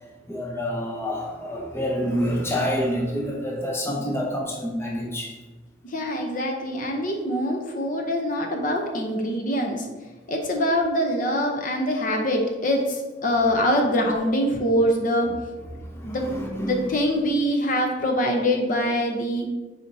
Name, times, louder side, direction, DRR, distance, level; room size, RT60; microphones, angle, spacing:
voice 1, 0.3-5.3 15.9-16.8, equal, 15° left, -1 dB, 0.7 m, -27 dB
voice 2, 5.8-9.9 10.3-15.3 16.0-16.3 16.6-19.5, equal, 50° left, 2 dB, 0.8 m, -24 dB
7.0 x 4.9 x 2.8 m, 1.2 s
head